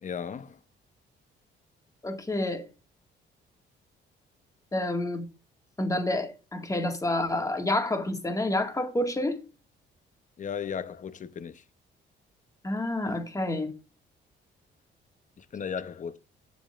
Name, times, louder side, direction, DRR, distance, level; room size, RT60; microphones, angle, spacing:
voice 1, 0.0-0.6 10.4-11.6 15.4-16.2, left 7 dB, 40° left, 0.7 m, -35 dB
voice 2, 2.0-2.7 4.7-5.3 5.8-9.4 12.6-13.7, left 1 dB, 15° left, 1.8 m, -28 dB
16.5 x 7.2 x 2.5 m
cardioid pair, 90°, 20 cm